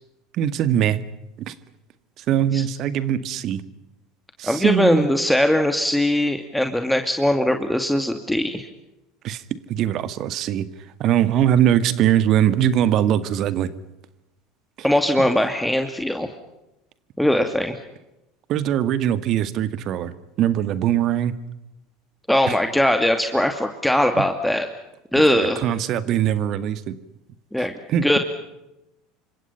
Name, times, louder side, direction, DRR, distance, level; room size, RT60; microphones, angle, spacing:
voice 1, 0.3-1.0 1.4-1.5 2.2-3.6 4.4-5.1 9.2-9.4 9.7-10.7 11.0-13.7 15.2-15.3 18.5-21.3 24.2-24.3 25.6-27.0 27.9-28.2, right 10 dB, 50° right, 13 dB, 1.9 m, -21 dB
voice 2, 4.5-8.7 14.8-16.3 17.2-17.8 22.3-24.7 25.1-25.6 27.5-27.7 28.0-28.2, left 1 dB, 5° left, 6 dB, 2.5 m, -20 dB
29.0 x 26.0 x 5.8 m, 0.93 s
hypercardioid pair, 80°, 0 cm